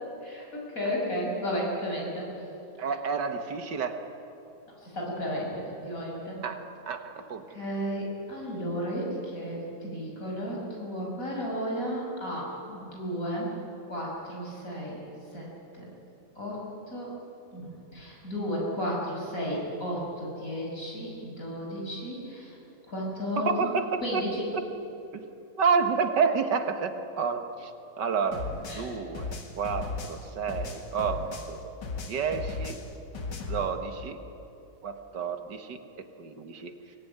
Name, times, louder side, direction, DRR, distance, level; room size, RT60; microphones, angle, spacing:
voice 1, 0.2-2.3 4.8-6.4 7.5-13.5 13.9-15.0 15.3-15.5 15.7-15.9 16.4-17.1 17.5-22.5 22.9-23.7 24.0-24.4 28.7-28.9, equal, 50° left, -2 dB, 6.7 m, -33 dB
voice 2, 2.8-4.0 6.4-7.5 23.4-24.3 24.5-24.7 25.1-25.3 25.6-27.7 28.0-31.7 32.0-32.8 33.4-34.2 34.8-36.7, right 5 dB, 85° right, 7 dB, 2.1 m, -30 dB
sound 1, 28.3-31.6 31.8-33.7, left 3 dB, 85° left, 2.5 m, -36 dB
24.0 x 19.0 x 9.5 m, 2.8 s
omnidirectional pair, 1.8 m